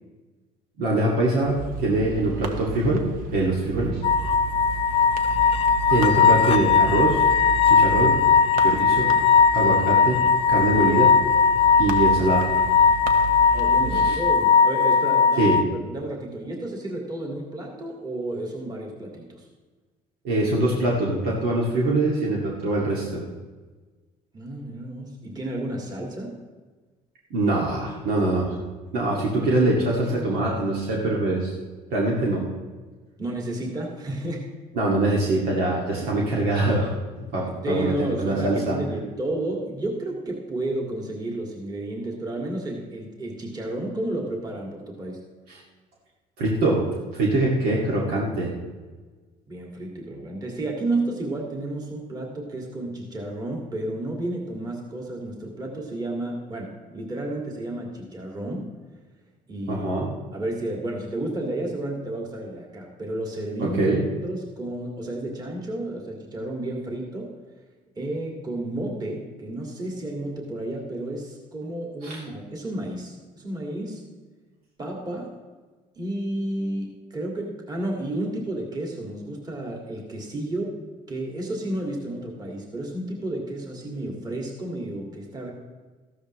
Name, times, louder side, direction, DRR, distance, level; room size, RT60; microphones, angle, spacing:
voice 1, 0.8-3.0 3.3-4.0 5.9-7.2 7.7-8.2 8.5-9.1 9.5-10.2 10.5-11.1 11.8-12.4 13.9-14.2 15.4-15.6 20.2-23.2 27.3-28.5 28.9-31.5 31.9-32.4 34.8-36.9 37.2-38.7 46.4-46.8 47.1-48.5 59.7-60.1 63.6-64.0 72.0-72.2, right 2 dB, 85° right, -4 dB, 2.3 m, -23 dB
sound 1, 1.4-14.2, right 5 dB, 65° right, 1.1 m, -34 dB
sound 2, 4.0-15.6, left 6 dB, 40° left, 0.4 m, -19 dB
voice 2, 13.5-19.5 24.3-26.4 33.2-34.5 37.6-45.2 49.5-58.7 59.5-59.9 60.3-63.8 64.2-67.3 68.0-74.0 74.8-75.3 76.0-80.8 81.1-85.5, right 1 dB, 25° right, -1 dB, 2.2 m, -31 dB
14.5 x 12.0 x 3.2 m, 1.3 s
cardioid pair, 120°, 15 cm